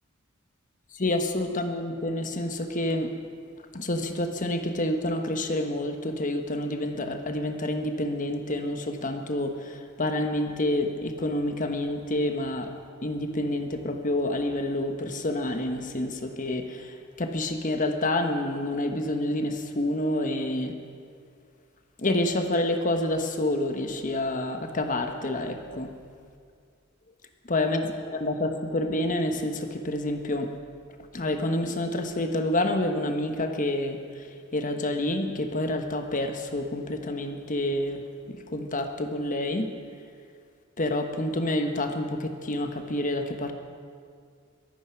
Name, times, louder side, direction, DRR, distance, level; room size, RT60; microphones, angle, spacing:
voice 1, 0.9-3.1 3.7-12.7 13.0-20.7 22.0-25.9 27.5-30.5 31.1-38.0 38.3-39.7 40.8-43.5, left 1 dB, 40° left, 5 dB, 1.2 m, -28 dB
23.0 x 9.5 x 5.9 m, 2.2 s
head